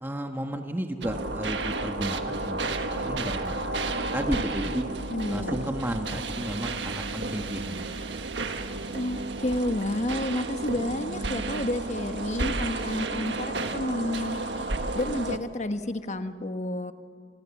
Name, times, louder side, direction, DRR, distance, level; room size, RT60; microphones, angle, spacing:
voice 1, 0.0-2.6 2.9-4.8 5.3-7.8 8.1-8.3, right 1 dB, 10° right, 4 dB, 1.4 m, -33 dB
sound 1, 1.0-15.4, right 2 dB, 80° right, 1.5 m, -32 dB
voice 2, 5.1-5.6 8.9-14.7 14.9-16.9, left 1 dB, 40° left, 9 dB, 1.1 m, -30 dB
29.5 x 25.5 x 7.2 m, 2.2 s
head